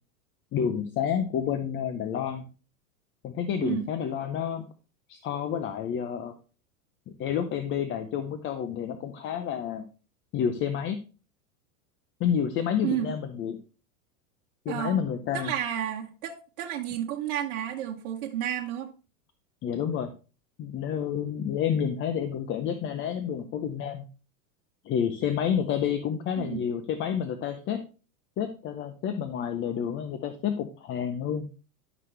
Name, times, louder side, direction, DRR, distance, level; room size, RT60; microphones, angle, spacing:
voice 1, 0.5-2.4 3.2-4.6 5.1-6.3 7.2-9.8 10.3-11.0 12.2-13.6 14.6-15.5 19.6-20.1 20.6-24.1 24.8-27.8 28.4-31.5, left 8 dB, 25° left, 9 dB, 0.7 m, -29 dB
voice 2, 12.8-13.2 14.7-15.0 15.3-18.9 26.4-26.7, right 11 dB, 65° right, 0 dB, 1.2 m, -31 dB
11.0 x 6.0 x 3.3 m, 0.34 s
hypercardioid pair, 120°, 44 cm